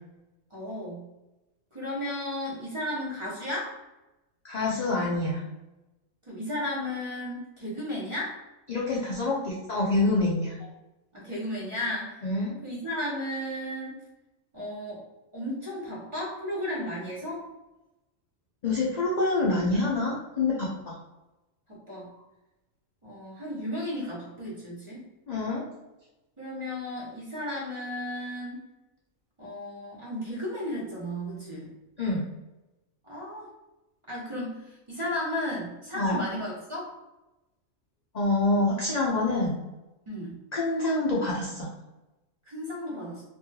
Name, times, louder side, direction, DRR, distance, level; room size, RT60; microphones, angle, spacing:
voice 1, 0.5-1.1 1.7-3.7 6.3-8.3 11.1-12.1 12.6-13.9 14.5-15.0 15.3-17.4 21.7-22.1 23.0-25.1 26.4-28.6 29.4-31.7 33.1-33.5 34.1-36.8 40.1-40.4 42.4-43.2, left 1 dB, 25° right, -7 dB, 0.8 m, -34 dB
voice 2, 4.4-5.4 8.7-10.5 12.2-12.6 18.6-21.0 25.3-25.6 32.0-32.3 35.9-36.2 38.1-39.6 40.5-41.7, left 2 dB, 50° left, -6 dB, 0.5 m, -26 dB
3.1 x 3.1 x 2.2 m, 1.0 s
omnidirectional pair, 1.4 m